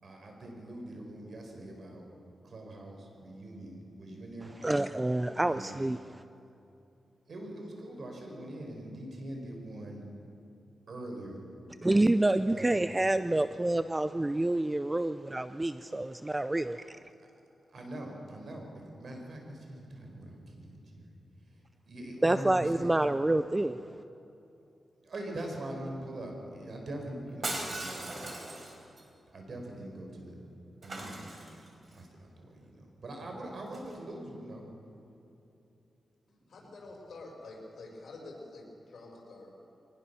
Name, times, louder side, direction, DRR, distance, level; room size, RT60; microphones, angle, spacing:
voice 1, 0.0-2.0 2.4-4.5 5.5-5.7 7.3-10.1 10.9-11.4 12.3-12.8 17.7-21.1 21.9-22.9 25.0-28.2 29.3-30.4 30.8-31.3 31.9-32.1 32.4-34.6 36.3-36.7, right 1 dB, 60° right, 2 dB, 5.0 m, -42 dB
voice 2, 4.6-6.0 11.8-17.0 22.2-23.8, right 1 dB, 15° right, 12 dB, 0.5 m, -28 dB
Shatter, 27.4-29.0 30.8-31.9 33.7-33.9, right 2 dB, 45° right, 4.1 m, -38 dB
voice 3, 36.5-39.5, left 2 dB, 70° left, 0 dB, 6.2 m, -47 dB
23.0 x 19.0 x 7.1 m, 2.8 s
cardioid pair, 90°, 0 cm